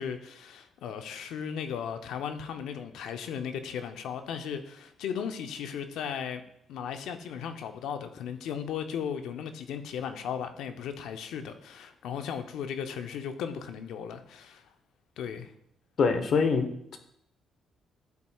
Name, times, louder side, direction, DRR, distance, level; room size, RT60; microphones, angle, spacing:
voice 1, 0.0-6.4 6.7-14.7 15.2-15.5, left 7 dB, 80° left, 8 dB, 0.6 m, -36 dB
voice 2, 16.0-17.0, left 5 dB, 60° left, 8 dB, 0.9 m, -25 dB
12.0 x 4.3 x 2.3 m, 0.73 s
cardioid pair, 90°, 0 cm